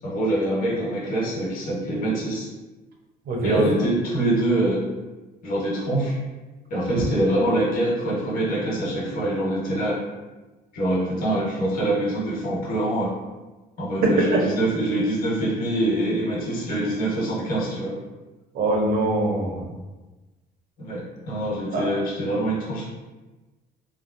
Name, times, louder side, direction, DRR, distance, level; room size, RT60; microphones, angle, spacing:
voice 1, 0.0-2.5 3.4-4.8 5.4-6.2 6.7-10.0 10.7-13.1 13.8-18.0 20.8-21.0 21.3-22.8, right 1 dB, 55° left, -5 dB, 1.1 m, -24 dB
voice 2, 3.3-3.6 7.0-7.1 14.0-14.4 18.5-19.6 21.7-21.8, right 2 dB, 65° right, -1 dB, 0.7 m, -22 dB
3.2 x 2.0 x 2.5 m, 1.2 s
cardioid pair, 110°, 17 cm